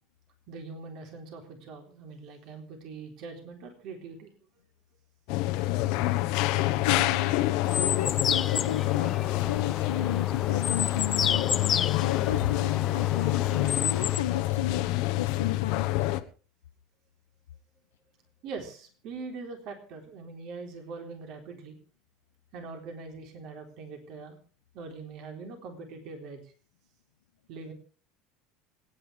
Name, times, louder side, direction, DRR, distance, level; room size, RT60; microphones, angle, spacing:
voice 1, 0.5-4.3 18.4-21.8 22.5-24.4 24.7-26.5 27.5-27.7, right 4 dB, 55° right, 4 dB, 3.8 m, -42 dB
sound 1, 5.3-16.2, left 17 dB, 60° left, 1.2 m, -27 dB
voice 2, 6.8-14.9 15.2-15.9, left 10 dB, 80° left, 10 dB, 0.7 m, -34 dB
sound 2, 7.6-14.2, left 8 dB, 35° left, 0.8 m, -31 dB
26.0 x 9.7 x 3.5 m, 0.40 s
hypercardioid pair, 75°, 0 cm